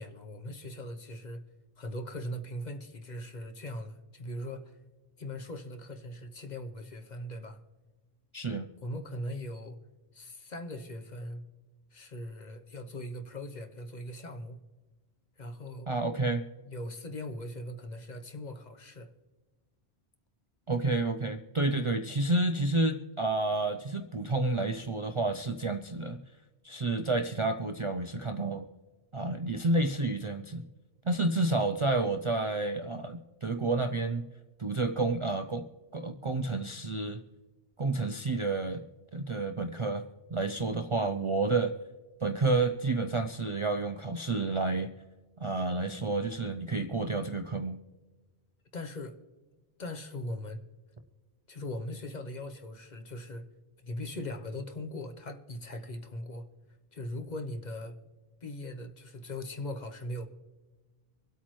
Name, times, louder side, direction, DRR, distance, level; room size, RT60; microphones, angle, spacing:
voice 1, 0.0-1.4 1.8-4.8 5.2-7.6 8.8-9.8 10.1-11.4 11.9-14.6 15.4-15.9 16.7-19.1 21.7-21.8 48.7-49.2 49.8-50.6 51.5-53.4 53.8-56.5 56.9-58.0 58.4-60.3, left 1 dB, 45° left, 0.9 m, -40 dB
voice 2, 8.3-8.7 15.9-16.5 20.7-26.2 26.6-28.7 29.1-30.6 31.1-34.2 34.6-35.7 35.9-37.2 37.8-38.8 39.1-40.0 40.3-41.7 42.2-44.9 45.4-47.8, right 2 dB, 40° right, 0.4 m, -30 dB
25.0 x 8.4 x 3.1 m
omnidirectional pair, 1.1 m